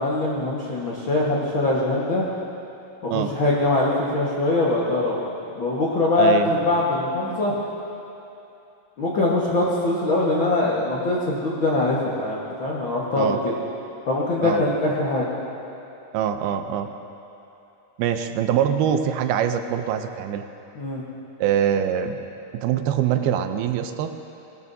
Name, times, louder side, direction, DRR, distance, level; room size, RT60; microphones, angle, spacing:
voice 1, 0.0-2.3 3.0-5.2 5.5-7.6 9.0-13.5 14.1-15.3 20.7-21.0, left 2 dB, 65° left, -6 dB, 1.2 m, -22 dB
voice 2, 6.2-6.5 13.2-13.4 14.4-14.6 16.1-16.9 18.0-20.5 21.4-22.2 22.5-24.1, right 9 dB, 80° right, 7 dB, 2.5 m, -23 dB
20.0 x 19.0 x 2.7 m, 2.8 s
omnidirectional pair, 4.5 m